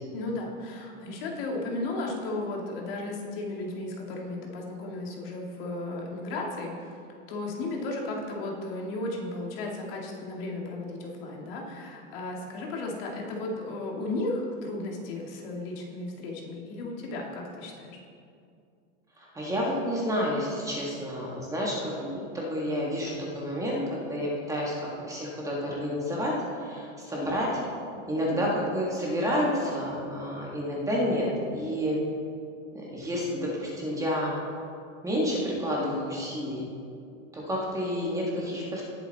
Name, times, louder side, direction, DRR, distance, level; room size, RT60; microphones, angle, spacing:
voice 1, 0.1-7.0 7.3-18.0, left 2 dB, 50° left, -1 dB, 2.2 m, -34 dB
voice 2, 19.2-27.6 28.1-32.0 32.7-34.3 35.0-36.7 37.3-38.8, equal, 10° right, -4 dB, 1.6 m, -30 dB
18.5 x 7.0 x 4.1 m, 2.4 s
supercardioid pair, 155°, 37 cm